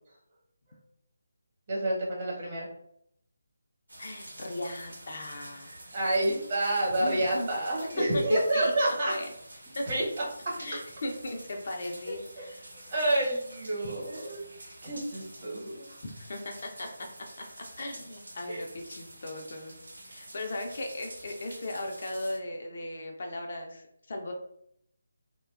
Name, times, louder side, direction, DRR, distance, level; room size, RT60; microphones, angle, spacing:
voice 1, 1.7-2.7 5.9-9.1 9.9-10.0 12.4-12.5 12.9-14.4 14.8-15.9 18.5-18.6, right 1 dB, 40° right, -4 dB, 1.0 m, -28 dB
sound 1, 3.9-22.4, right 1 dB, 70° right, 0.8 m, -48 dB
voice 2, 4.0-5.8 7.0-7.5 8.0-9.3 9.8-9.9 10.6-12.7 16.0-17.1 17.4-19.8 20.1-24.3, left 1 dB, 50° left, 2 dB, 0.5 m, -37 dB
2.6 x 2.2 x 2.4 m, 0.71 s
figure-of-eight pair, 155°, 0 cm